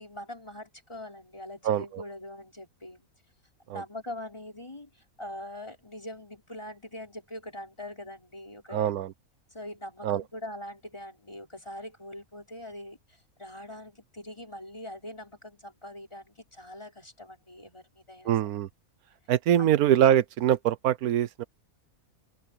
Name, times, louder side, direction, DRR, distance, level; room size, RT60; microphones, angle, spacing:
voice 1, 0.0-3.1 3.7-8.9 9.5-18.4 19.6-19.7, left 1 dB, 20° left, 5.0 m, -42 dB
voice 2, 1.6-2.0 3.7-3.8 8.7-9.1 10.0-10.2 18.2-18.7 19.3-21.4, right 10 dB, 85° right, 1.2 m, -24 dB
open air
omnidirectional pair, 1.5 m